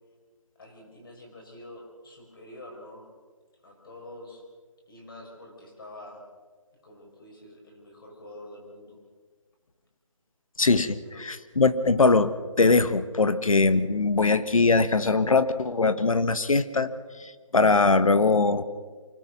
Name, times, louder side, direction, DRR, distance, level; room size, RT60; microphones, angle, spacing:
voice 1, 0.6-3.0 3.6-4.4 4.9-6.3 6.8-9.0 11.0-11.3, left 1 dB, 40° left, 1 dB, 5.7 m, -46 dB
voice 2, 10.6-16.9 17.2-18.6, left 3 dB, 80° left, 12 dB, 1.6 m, -22 dB
24.5 x 18.5 x 6.2 m, 1.5 s
hypercardioid pair, 175°, 17 cm